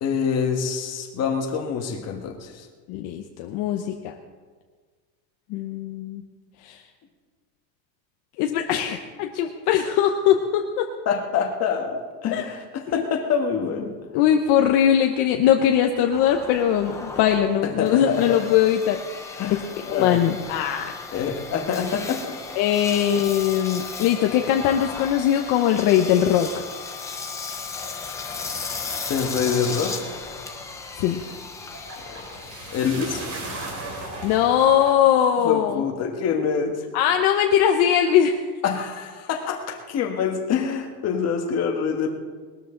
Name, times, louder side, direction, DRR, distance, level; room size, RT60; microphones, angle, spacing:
voice 1, 0.0-2.7 11.0-14.0 17.6-18.2 19.4-20.3 21.1-22.3 29.1-30.0 32.7-33.2 35.4-36.8 38.6-42.1, left 6 dB, 30° left, 3 dB, 1.5 m, -26 dB
voice 2, 2.9-4.1 5.5-6.2 6.6-6.8 8.4-10.9 12.3-12.5 12.9-13.1 14.1-19.0 19.9-20.9 22.6-26.6 31.0-31.2 34.2-35.8 36.9-38.4, left 10 dB, 50° left, 4 dB, 0.9 m, -21 dB
Engine, 16.1-34.5, left 4 dB, 10° left, 0.3 m, -36 dB
sound 1, 28.4-35.0, right 2 dB, 30° right, 2.9 m, -38 dB
20.0 x 13.0 x 3.8 m, 1.5 s
cardioid pair, 175°, 48 cm